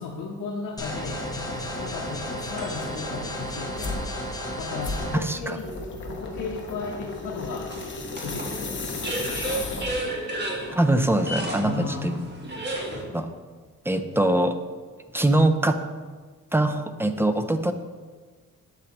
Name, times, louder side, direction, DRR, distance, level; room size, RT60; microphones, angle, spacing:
voice 1, 0.0-4.1 4.6-5.7 6.0-7.7 8.2-9.9 11.6-12.1 14.1-14.2, left 4 dB, 75° left, -2 dB, 0.8 m, -35 dB
sound 1, 0.8-5.2, equal, 10° left, 0.9 m, -33 dB
sound 2, 1.5-3.1 3.8-3.9 7.7-13.0, right 1 dB, 35° right, 1.4 m, -33 dB
sound 3, 3.8-4.1 4.8-10.2, left 3 dB, 35° left, 1.0 m, -34 dB
voice 2, 5.1-5.6 10.7-12.2 13.1-13.3 13.9-14.6 15.1-15.9 16.5-17.7, right 1 dB, 10° right, 8 dB, 0.3 m, -23 dB
7.7 x 7.4 x 2.9 m, 1.4 s
cardioid pair, 135°, 32 cm